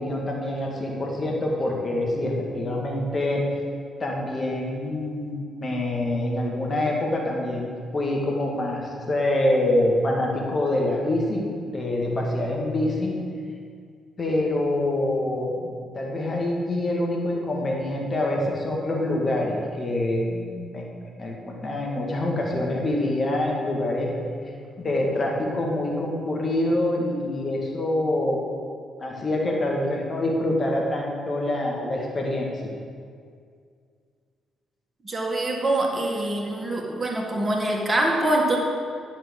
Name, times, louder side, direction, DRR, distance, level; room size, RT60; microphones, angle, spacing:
voice 1, 0.0-3.4 4.0-13.1 14.2-20.9 21.2-24.1 24.8-28.4 29.0-32.5, left 1 dB, 40° left, -1 dB, 2.1 m, -25 dB
voice 2, 35.0-38.6, right 1 dB, 30° right, -1 dB, 1.9 m, -24 dB
10.5 x 6.2 x 4.8 m, 2.2 s
hypercardioid pair, 45°, 0 cm